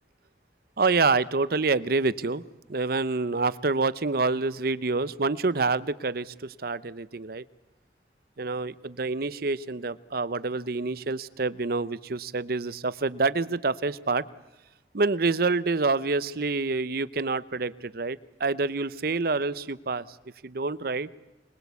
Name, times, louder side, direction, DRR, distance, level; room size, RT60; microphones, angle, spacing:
voice 1, 0.8-2.4 2.7-7.4 8.4-14.2 14.9-20.1 20.4-21.1, right 3 dB, 55° right, 17 dB, 0.8 m, -27 dB
26.5 x 21.5 x 8.3 m, 1.1 s
head